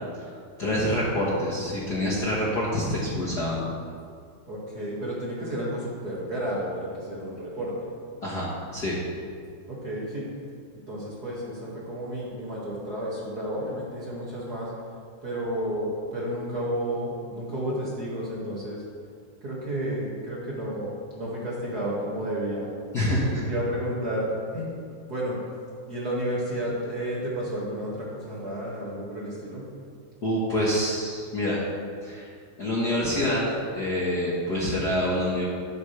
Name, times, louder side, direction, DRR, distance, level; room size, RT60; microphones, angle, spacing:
voice 1, 0.6-3.6 8.2-9.0 22.9-23.4 30.2-31.6 32.0-32.3 32.6-33.4 33.7-35.5, left 1 dB, 40° left, -6 dB, 1.7 m, -26 dB
voice 2, 4.5-7.9 9.7-10.3 10.9-14.7 15.2-18.8 19.4-22.7 23.3-25.4 25.9-29.7, equal, 35° right, -6 dB, 2.3 m, -31 dB
12.5 x 12.5 x 3.4 m, 2.2 s
omnidirectional pair, 3.5 m